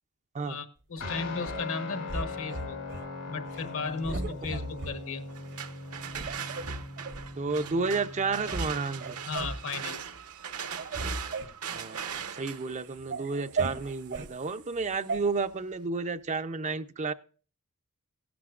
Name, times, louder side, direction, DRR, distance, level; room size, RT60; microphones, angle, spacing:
voice 1, 0.4-2.8 3.3-5.2 9.3-10.0, left 4 dB, 65° left, 1.2 m, -35 dB
Guitar, 1.0-9.8, left 3 dB, 85° left, 3.0 m, -41 dB
sound 1, 1.0-1.6 2.1-3.1 3.5-3.7 4.0-5.0 5.5-5.6 6.1-7.3 7.9-8.0 8.2-8.7 9.0-9.6 10.1-10.3 10.6-12.4 12.8-14.3 15.1-15.2, right 3 dB, 50° right, 0.9 m, -36 dB
sound 2, 5.3-15.1, right 7 dB, 80° right, 1.1 m, -41 dB
voice 2, 7.4-9.2 11.7-17.1, right 4 dB, 30° right, 0.5 m, -31 dB
17.0 x 12.0 x 2.4 m
head